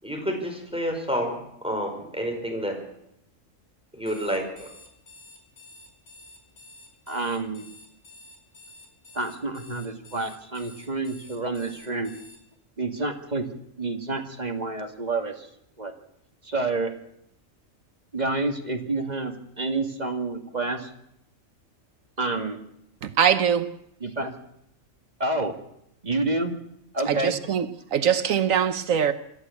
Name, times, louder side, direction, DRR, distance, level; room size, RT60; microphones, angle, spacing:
voice 1, 0.0-2.8 3.9-4.7, equal, 5° right, 5.3 m, -29 dB
Alarm, 4.0-12.4, left 2 dB, 80° left, 3.8 m, -49 dB
voice 2, 7.1-7.7 9.1-12.1 12.8-13.5 13.8-15.5 15.8-15.9 16.4-16.9 18.1-20.9 22.2-22.6 24.0-24.3 25.2-25.6 26.0-26.5 26.9-27.4, right 2 dB, 30° right, 2.1 m, -28 dB
voice 3, 23.0-23.7 27.1-29.1, right 8 dB, 80° right, 1.4 m, -23 dB
26.0 x 13.0 x 8.3 m
omnidirectional pair, 1.4 m